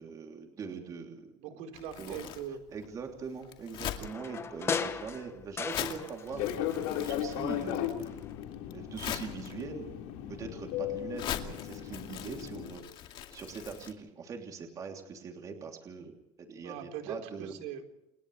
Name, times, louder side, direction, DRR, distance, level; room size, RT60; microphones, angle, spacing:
voice 1, 0.0-1.3 2.0-2.3 2.7-8.2 8.7-9.9 10.3-16.2 16.5-17.5, right 5 dB, 30° right, 2 dB, 3.1 m, -42 dB
voice 2, 1.4-2.6 16.6-18.0, right 9 dB, 80° right, 4 dB, 4.3 m, -41 dB
Crumpling crinkling, 1.7-13.9, left 10 dB, 45° left, 2.4 m, -43 dB
sound 1, 4.0-6.4 6.7-7.8 8.1-8.2, left 6 dB, 20° left, 1.2 m, -37 dB
Fixed-wing aircraft airplane, 6.3-12.7, left 11 dB, 90° left, 4.7 m, -36 dB
29.5 x 29.0 x 3.3 m, 0.85 s
cardioid pair, 170°, 12 cm